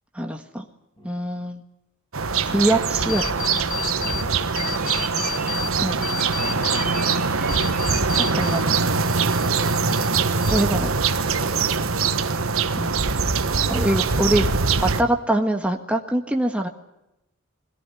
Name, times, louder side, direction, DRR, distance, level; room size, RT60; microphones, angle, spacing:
voice 1, 0.1-0.7 1.0-1.6 2.4-3.2 5.8-6.0 8.1-8.9 10.5-10.9 12.8-13.0 13.7-14.5 15.0-16.7, right 1 dB, 5° right, 2 dB, 1.6 m, -23 dB
sound 1, 2.1-15.0, right 4 dB, 75° right, 1.3 m, -23 dB
sound 2, 3.1-4.2 4.6-5.7 6.0-8.6 8.9-10.1 10.4-11.0, left 7 dB, 40° left, 1.0 m, -32 dB
sound 3, 3.4-9.4, right 7 dB, 40° right, 2.9 m, -40 dB
voice 2, 4.0-4.9 6.3-6.8 11.3-12.0 13.4-14.6, equal, 25° left, 2 dB, 7.3 m, -43 dB
21.5 x 18.0 x 9.9 m, 0.90 s
head